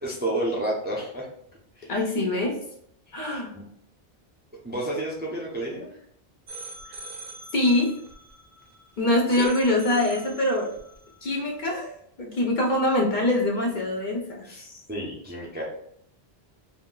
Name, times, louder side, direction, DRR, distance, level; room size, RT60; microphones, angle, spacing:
voice 1, 0.0-1.3 1.8-1.9 3.1-3.6 4.6-5.9 9.3-9.6 14.4-15.6, right 1 dB, 15° right, -3 dB, 0.4 m, -31 dB
voice 2, 1.9-2.6 3.1-3.5 6.9-7.0 7.5-7.9 9.0-10.7 11.2-11.9 12.2-14.5, left 1 dB, 55° left, 0 dB, 0.6 m, -24 dB
sound 1, 6.5-11.7, right 2 dB, 70° right, 0.8 m, -44 dB
2.3 x 2.1 x 3.7 m, 0.69 s
omnidirectional pair, 1.1 m